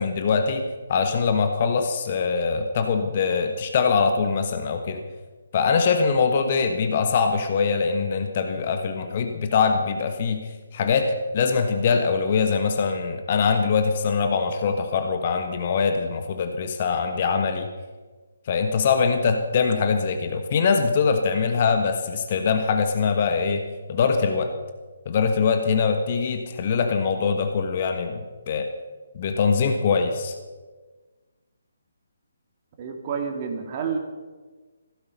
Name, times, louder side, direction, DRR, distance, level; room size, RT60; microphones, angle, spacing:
voice 1, 0.0-5.0 5.5-17.7 18.5-24.6 25.0-28.2 28.5-28.7 29.1-30.3, left 5 dB, 40° left, 7 dB, 1.4 m, -23 dB
voice 2, 32.8-34.0, right 6 dB, 35° right, 3 dB, 2.4 m, -29 dB
16.5 x 13.5 x 5.5 m, 1.3 s
figure-of-eight pair, 140°, 0 cm